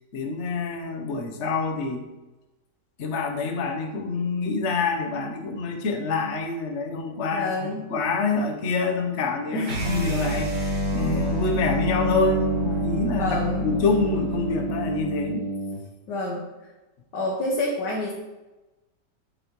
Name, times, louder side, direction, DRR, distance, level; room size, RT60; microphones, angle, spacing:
voice 1, 0.1-2.1 3.0-13.4 13.6-15.4, left 3 dB, 50° left, 3 dB, 1.1 m, -27 dB
voice 2, 7.3-7.8 9.4-9.8 13.1-13.7 16.1-16.4 17.1-18.1, left 2 dB, 75° left, -5 dB, 2.0 m, -28 dB
sound 1, 9.6-15.8, equal, 65° right, 3.6 m, -27 dB
8.1 x 6.4 x 3.1 m, 1.1 s
omnidirectional pair, 1.9 m